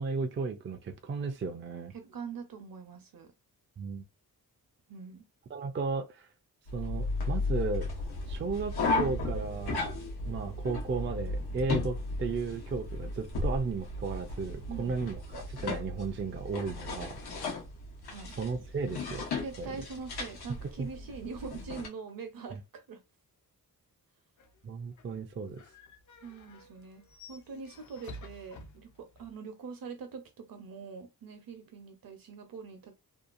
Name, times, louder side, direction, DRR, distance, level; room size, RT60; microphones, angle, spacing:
voice 1, 0.0-1.9 3.8-4.0 5.5-6.3 6.7-7.9 8.3-9.9 10.3-15.2 15.5-17.2 18.4-19.2 19.6-19.7 20.8-20.9 22.5-22.6 24.6-25.6, right 4 dB, 35° right, 0.4 m, -34 dB
voice 2, 1.9-3.3 4.9-5.3 14.7-15.0 18.0-18.4 19.4-23.0 26.2-32.9, right 5 dB, 65° right, 0.8 m, -43 dB
sound 1, 6.7-21.9, left 2 dB, 90° left, 1.0 m, -35 dB
sound 2, 24.4-29.4, left 2 dB, 50° left, 0.5 m, -52 dB
2.7 x 2.2 x 2.5 m
wide cardioid pair, 130°, 37 cm